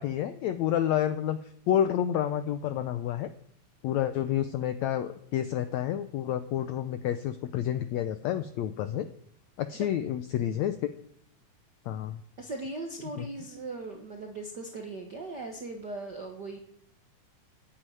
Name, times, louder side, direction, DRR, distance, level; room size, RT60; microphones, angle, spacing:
voice 1, 0.0-1.4 1.7-3.3 3.8-9.1 9.6-10.9 11.9-12.2 13.2-13.3, left 10 dB, 80° left, 11 dB, 1.6 m, -29 dB
voice 2, 12.4-16.6, right 2 dB, 60° right, 3 dB, 1.1 m, -39 dB
14.5 x 9.8 x 9.1 m, 0.75 s
omnidirectional pair, 4.0 m